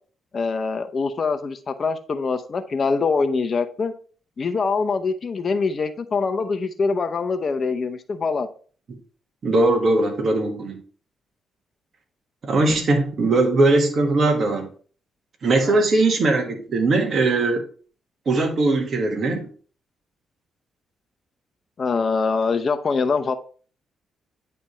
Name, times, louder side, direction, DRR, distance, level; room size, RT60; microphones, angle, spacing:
voice 1, 0.3-3.9 4.4-8.5 15.6-16.0 21.8-23.3, left 4 dB, 50° left, 8 dB, 0.8 m, -24 dB
voice 2, 9.4-10.8 12.4-14.7 15.4-17.6 18.2-19.5, right 2 dB, 55° right, 3 dB, 1.6 m, -20 dB
8.9 x 3.4 x 4.2 m, 0.41 s
supercardioid pair, 65°, 0 cm